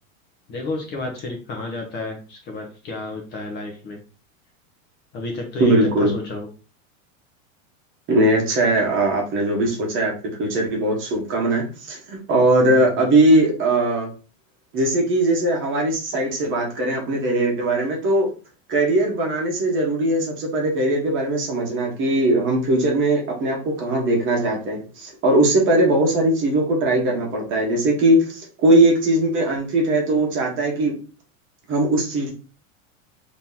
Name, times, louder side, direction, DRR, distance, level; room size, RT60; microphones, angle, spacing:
voice 1, 0.5-4.0 5.1-6.5 12.7-12.9, left 2 dB, 25° left, 1 dB, 0.7 m, -31 dB
voice 2, 5.6-6.1 8.1-10.1 10.4-14.1 14.7-18.3 18.7-30.9 31.7-32.3, right 1 dB, 30° right, 0 dB, 1.0 m, -20 dB
3.0 x 2.8 x 3.7 m, 0.36 s
supercardioid pair, 150°, 40 cm